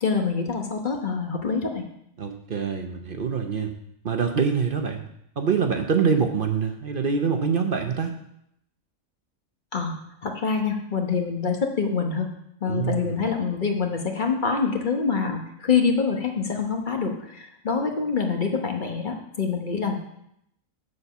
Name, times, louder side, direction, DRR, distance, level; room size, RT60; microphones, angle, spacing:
voice 1, 0.0-1.9 9.7-12.3 12.6-20.0, left 5 dB, 40° left, 3 dB, 1.1 m, -26 dB
voice 2, 2.2-3.7 4.0-5.0 5.4-8.2 12.6-13.2, right 6 dB, 50° right, 5 dB, 0.8 m, -25 dB
7.0 x 5.4 x 6.8 m, 0.75 s
omnidirectional pair, 1.4 m